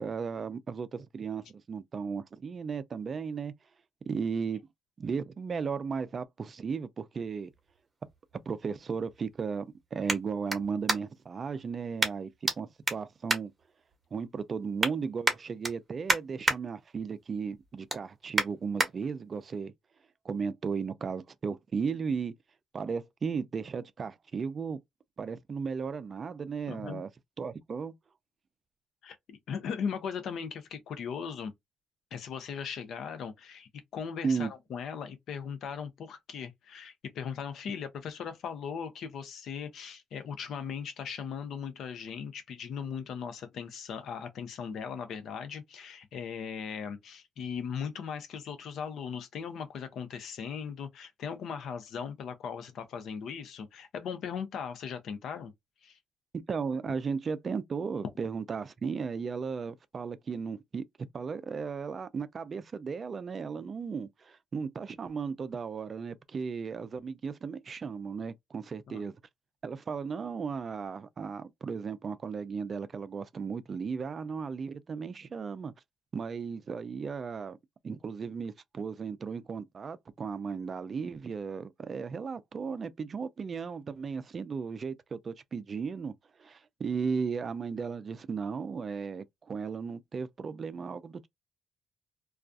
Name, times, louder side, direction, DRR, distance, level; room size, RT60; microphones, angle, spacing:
voice 1, 0.0-3.5 4.1-4.6 5.0-7.5 8.5-12.3 12.6-13.5 14.1-19.7 20.2-22.3 22.7-24.8 25.2-27.1 27.4-27.9 34.2-34.5 56.3-60.8 61.1-69.1 69.6-75.7 76.1-77.6 77.8-86.1 86.4-91.3, right 5 dB, 45° right, 0.4 m, -35 dB
sound 1, 7.2-11.3 12.0-12.6 12.8-14.2 14.5-14.9 15.2-16.6 17.0-17.3 17.6-18.9 19.5-19.6, right 2 dB, 20° right, 1.0 m, -31 dB
voice 2, 26.7-27.0 29.0-31.5 32.1-55.5 55.8-56.0 68.9-69.0, left 7 dB, 70° left, 0.6 m, -38 dB
2.3 x 2.2 x 2.5 m
cardioid pair, 90°, 0 cm